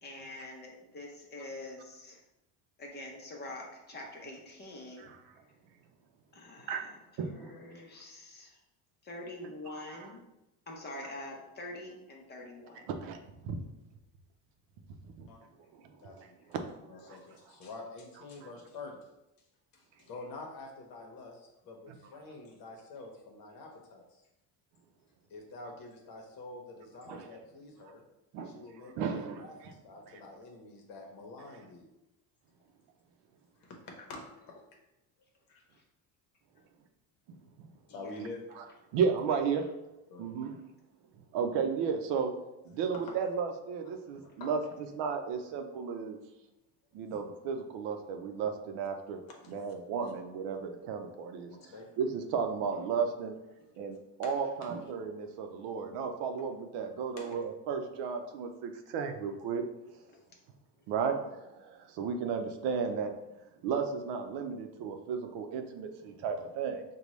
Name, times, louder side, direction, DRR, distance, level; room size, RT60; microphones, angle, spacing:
voice 1, 0.0-2.2 2.8-5.4 6.3-8.6 9.0-10.2 10.7-12.9 22.4-22.5 35.7-35.8 37.9-38.2 39.3-39.7 53.6-53.7 55.3-55.6 60.1-60.2 60.8-61.3, left 2 dB, 25° left, -1 dB, 0.7 m, -46 dB
voice 2, 7.2-7.6 12.9-13.6 15.0-15.3 15.7-16.6 17.0-17.2 27.1-27.2 28.3-28.6 29.0-29.5 37.3-37.4 38.9-39.6 40.2-40.6 41.3-42.3 42.6-44.6 44.9-46.2 46.9-49.2 49.5-51.5 52.0-53.3 53.8-59.6 60.9-63.1 63.6-66.8, right 6 dB, 80° right, 6 dB, 0.6 m, -34 dB
voice 3, 16.0-16.6 16.9-19.0 19.7-24.2 25.3-28.0 28.4-31.9 33.6-34.6 35.5-35.6 37.9-38.4 40.1-40.3 43.0-43.2 44.2-44.6 49.4-49.7 50.0-50.1 51.5-52.0 54.2-54.7 57.2-57.4 60.1-60.3, left 2 dB, 55° left, 1 dB, 0.9 m, -47 dB
5.1 x 2.3 x 3.1 m, 0.93 s
cardioid pair, 150°, 41 cm